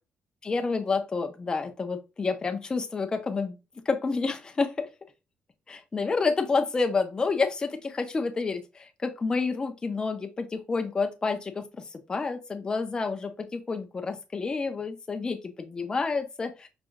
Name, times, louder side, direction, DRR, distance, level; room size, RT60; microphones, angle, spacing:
voice 1, 0.4-3.6 3.9-4.9 5.7-16.7, left 4 dB, 20° left, 0.5 m, -29 dB
5.0 x 2.7 x 2.4 m
cardioid pair, 155°, 4 cm